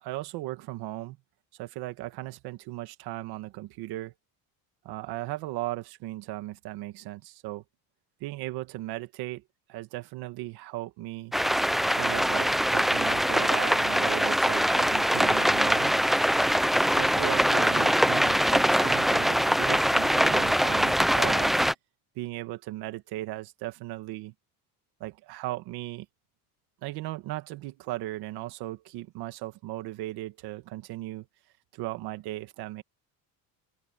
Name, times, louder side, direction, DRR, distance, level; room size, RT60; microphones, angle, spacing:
voice 1, 0.0-1.2 1.5-4.1 4.8-7.6 8.2-9.4 9.7-11.3 11.9-16.0 16.8-21.5 22.2-24.3 25.0-26.1 26.8-31.3 31.7-32.8, right 17 dB, 70° right, 1.9 m, -37 dB
sound 1, 11.3-21.7, equal, ahead, 0.6 m, -23 dB
open air
cardioid pair, 160°, 39 cm